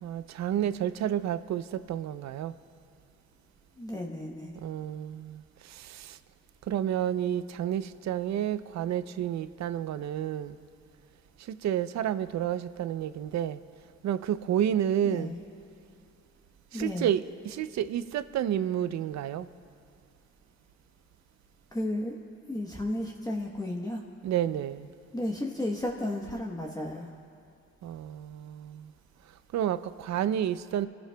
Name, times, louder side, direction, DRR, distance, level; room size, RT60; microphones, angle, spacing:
voice 1, 0.0-2.5 4.5-6.2 6.7-10.6 11.4-13.6 14.0-15.3 16.7-19.5 24.2-24.9 27.8-28.9 29.5-30.9, right 10 dB, 65° right, 0.6 m, -30 dB
voice 2, 3.8-4.5 15.0-15.4 16.7-17.1 21.7-22.2 22.5-24.0 25.1-27.1, left 1 dB, 10° left, 1.1 m, -33 dB
28.0 x 15.5 x 2.3 m
cardioid pair, 90°, 30 cm